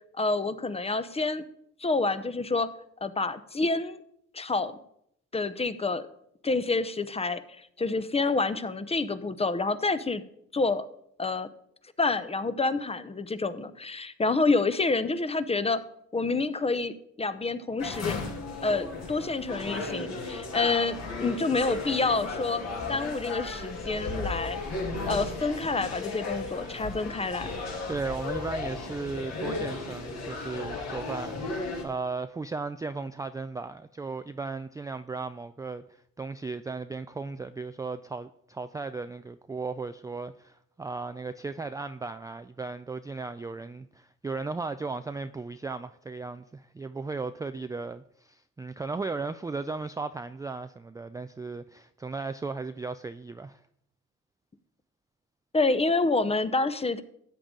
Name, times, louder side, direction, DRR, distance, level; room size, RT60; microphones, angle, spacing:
voice 1, 0.1-1.4 1.8-2.7 3.0-4.0 4.3-4.8 5.3-6.1 6.4-10.2 10.5-10.9 11.2-11.5 12.0-15.8 16.1-18.2 18.6-22.6 22.9-24.6 25.1-27.5 55.5-57.0, left 3 dB, 20° left, 0.8 m, -28 dB
sound 1, 17.8-31.8, left 3 dB, 60° left, 2.7 m, -35 dB
voice 2, 27.9-53.6, right 4 dB, 10° right, 0.3 m, -36 dB
13.0 x 8.7 x 3.7 m
cardioid pair, 90°, 30 cm